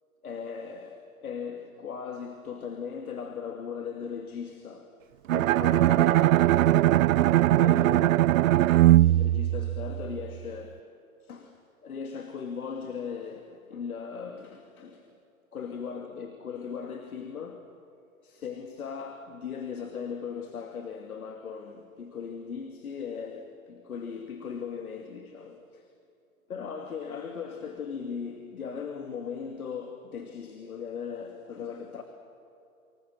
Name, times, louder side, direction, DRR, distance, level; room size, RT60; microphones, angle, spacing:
voice 1, 0.2-4.9 5.3-6.9 7.6-8.4 8.9-10.8 11.2-15.2 15.5-17.7 18.2-25.9 26.5-32.0, left 6 dB, 90° left, 2.6 m, -38 dB
Bowed string instrument, 5.3-10.3, right 15 dB, 70° right, 0.5 m, -21 dB
30.0 x 26.0 x 6.6 m
hypercardioid pair, 140°, 42 cm